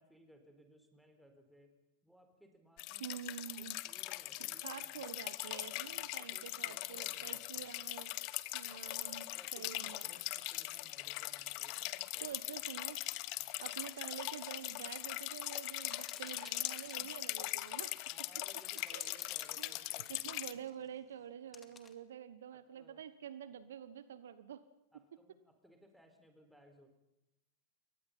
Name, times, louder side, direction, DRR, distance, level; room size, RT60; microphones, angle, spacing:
voice 1, 0.0-1.7 2.0-3.1 3.6-5.0 5.9-7.7 9.3-12.4 13.4-13.5 17.0-17.1 18.1-20.6 22.5-23.0 24.9-27.0, equal, ahead, 5 dB, 4.3 m, -63 dB
sound 1, 2.8-20.5, left 20 dB, 45° left, 1.0 m, -41 dB
voice 2, 3.0-3.8 4.6-8.1 8.5-10.2 12.2-13.0 13.6-17.9 18.9-19.1 19.6-19.7 20.1-24.6, right 9 dB, 60° right, 15 dB, 1.1 m, -48 dB
sound 2, 3.7-21.9, left 6 dB, 20° left, 2.2 m, -62 dB
28.5 x 23.5 x 5.6 m, 0.88 s
figure-of-eight pair, 90°, 0 cm